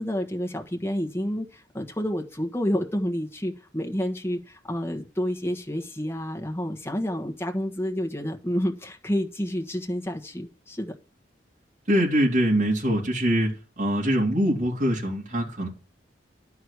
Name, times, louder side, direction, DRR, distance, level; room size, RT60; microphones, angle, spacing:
voice 1, 0.0-10.9, equal, 15° left, 1.4 m, -29 dB
voice 2, 11.9-13.5 13.8-15.7, equal, 45° right, 2.8 m, -23 dB
11.5 x 4.8 x 8.1 m
head